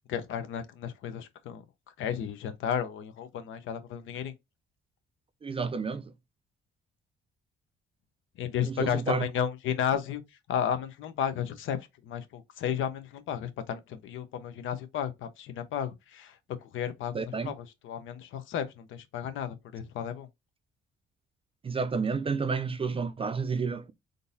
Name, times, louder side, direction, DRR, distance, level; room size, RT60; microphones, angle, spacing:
voice 1, 0.1-1.6 2.0-4.3 8.4-10.2 10.5-11.8 12.0-16.3 16.7-20.3, left 9 dB, 80° left, 0.7 m, -33 dB
voice 2, 5.4-6.1 8.6-9.3 17.1-17.5 21.6-23.9, right 5 dB, 30° right, 0.4 m, -30 dB
3.7 x 2.6 x 2.7 m
cardioid pair, 90°, 20 cm